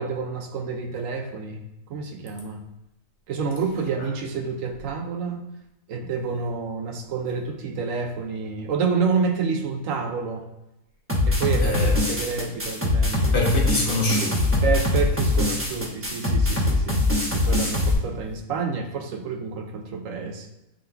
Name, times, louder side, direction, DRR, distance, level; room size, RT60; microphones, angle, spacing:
voice 1, 0.0-2.6 3.3-5.4 5.9-10.5 11.2-13.3 14.6-17.0 17.3-20.5, right 5 dB, 65° right, 1.0 m, -28 dB
sound 1, 11.1-17.9, left 2 dB, 10° right, 0.9 m, -22 dB
voice 2, 11.3-12.0 13.3-14.6, left 2 dB, 50° left, 1.4 m, -25 dB
7.3 x 3.7 x 3.4 m
omnidirectional pair, 1.5 m